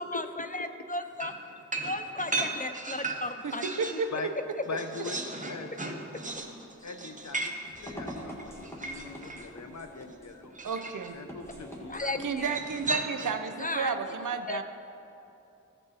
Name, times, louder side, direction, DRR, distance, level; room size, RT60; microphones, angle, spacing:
voice 1, 0.0-1.3 1.8-3.6 3.9-4.0 7.4-7.5 9.2-9.3 11.9-12.6 13.6-13.9 14.5-14.6, left 2 dB, 25° left, 9 dB, 0.4 m, -35 dB
sound 1, 1.2-4.1 4.4-9.5 10.5-11.1 12.5-13.5, right 2 dB, 25° right, 1.0 m, -36 dB
voice 2, 3.4-4.1 10.6-11.2 12.2-14.6, right 5 dB, 80° right, 8 dB, 0.7 m, -32 dB
voice 3, 4.7-5.2 5.5-6.0 6.8-10.6 11.1-12.1, left 4 dB, 60° left, 6 dB, 0.8 m, -41 dB
sound 2, 6.1-12.9, equal, 10° left, 1.8 m, -46 dB
16.0 x 5.5 x 4.2 m, 2.8 s
cardioid pair, 45°, 31 cm